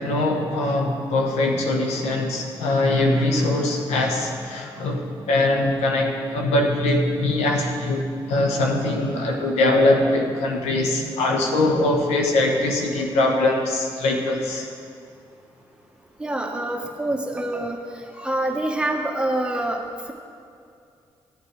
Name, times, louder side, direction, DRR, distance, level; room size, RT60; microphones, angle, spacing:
voice 1, 0.0-14.7, left 2 dB, 85° left, 1 dB, 1.1 m, -22 dB
voice 2, 16.2-17.8 18.2-19.8, right 1 dB, 10° right, 1 dB, 1.3 m, -26 dB
13.5 x 8.1 x 3.3 m, 2.5 s
supercardioid pair, 50°, 11 cm